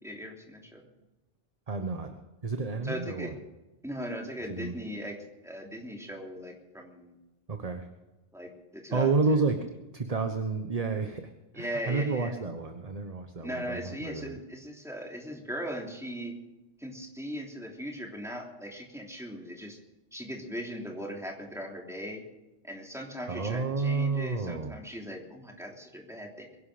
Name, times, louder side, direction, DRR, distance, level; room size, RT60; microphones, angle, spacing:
voice 1, 0.0-0.9 2.8-3.3 3.8-5.2 5.4-7.2 8.3-9.2 11.6-12.4 13.4-16.4 16.8-19.8 20.1-22.2 22.6-26.5, equal, ahead, 0 dB, 3.2 m, -39 dB
voice 2, 1.7-2.1 2.4-3.3 4.5-4.7 7.5-7.9 8.9-14.4 23.3-24.7, right 4 dB, 35° right, 6 dB, 1.2 m, -30 dB
23.0 x 11.5 x 5.1 m, 1.0 s
omnidirectional pair, 1.1 m